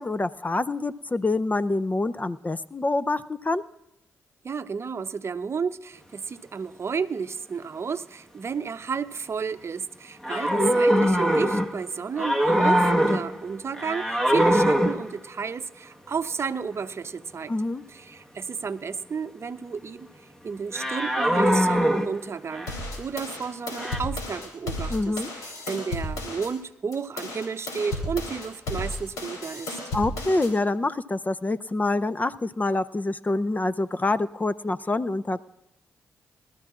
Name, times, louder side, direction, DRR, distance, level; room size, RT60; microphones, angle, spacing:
voice 1, 0.0-3.6 17.5-17.8 24.9-25.3 29.9-35.4, left 2 dB, 25° left, 15 dB, 0.5 m, -26 dB
voice 2, 4.4-17.5 17.9-22.7 23.0-29.8, right 5 dB, 45° right, 11 dB, 0.7 m, -32 dB
sound 1, 10.2-11.9 12.2-13.4 13.7-15.2 20.7-22.8 23.8-24.0, equal, 10° left, 1.4 m, -22 dB
sound 2, 22.7-26.5 26.9-30.5, left 2 dB, 90° left, 3.4 m, -33 dB
24.5 x 13.5 x 2.4 m, 0.88 s
supercardioid pair, 50°, 6 cm